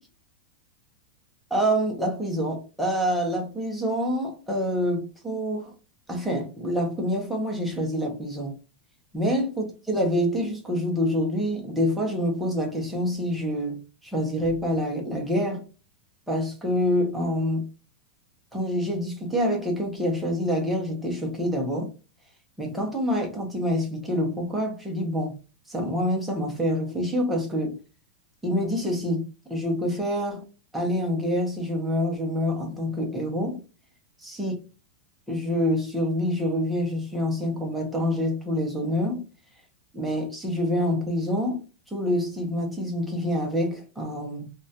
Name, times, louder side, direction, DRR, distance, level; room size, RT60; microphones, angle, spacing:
voice 1, 1.5-5.7 6.1-8.5 9.1-13.8 14.1-15.6 16.3-17.7 18.5-21.9 22.6-25.3 25.7-27.7 28.4-30.4 30.7-33.6 34.2-34.6 35.3-39.2 39.9-41.6 41.9-44.5, equal, ahead, 0.5 m, -26 dB
2.3 x 2.1 x 2.6 m
supercardioid pair, 175°, 6 cm